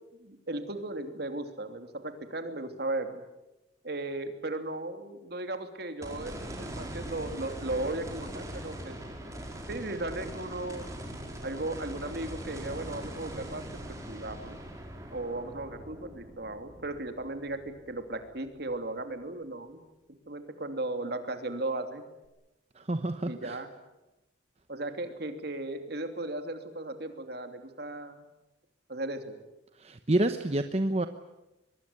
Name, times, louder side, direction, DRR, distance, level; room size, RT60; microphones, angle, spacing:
voice 1, 0.2-3.2 3.8-9.0 9.7-10.8 11.4-14.6 15.1-19.8 20.1-22.0 23.3-23.7 24.7-28.2 28.9-29.4, right 2 dB, 55° right, 7 dB, 3.0 m, -36 dB
sound 1, 6.0-18.3 18.8-18.9 22.2-22.3, right 1 dB, 15° right, 4.6 m, -41 dB
voice 2, 22.8-23.6 29.8-31.1, right 1 dB, 35° right, 8 dB, 1.0 m, -28 dB
23.5 x 22.0 x 9.9 m, 0.99 s
head